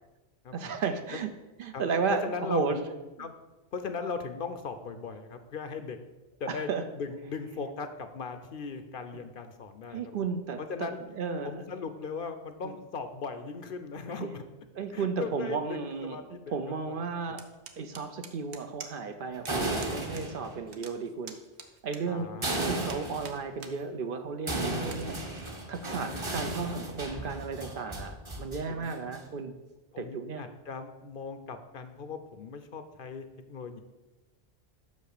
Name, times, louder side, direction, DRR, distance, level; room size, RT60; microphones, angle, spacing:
voice 1, 0.5-1.3 1.6-2.8 6.5-6.8 9.9-10.9 11.2-11.5 14.2-14.3 14.8-16.2 16.5-17.5 17.8-21.4 21.8-22.3 22.7-25.3 25.7-29.5 30.0-30.4, right 5 dB, 60° right, 8 dB, 0.7 m, -33 dB
voice 2, 2.2-2.8 3.2-3.3 3.7-6.0 6.4-10.1 10.6-11.0 11.4-14.5 14.9-16.5 16.9-17.4 22.1-22.6 26.0-26.2 28.7-29.1 29.9-33.8, left 5 dB, 60° left, 9 dB, 0.7 m, -38 dB
sound 1, 17.4-19.2 19.5-19.6 19.8-20.3 20.5-22.5 22.9-23.8 24.2-24.3 24.8-25.0, right 7 dB, 80° right, 1.0 m, -46 dB
sound 2, 19.3-20.6 22.4-23.4 24.5-28.6 28.9-29.4, right 2 dB, 30° right, 1.0 m, -34 dB
6.1 x 5.3 x 6.6 m, 1.1 s
omnidirectional pair, 1.1 m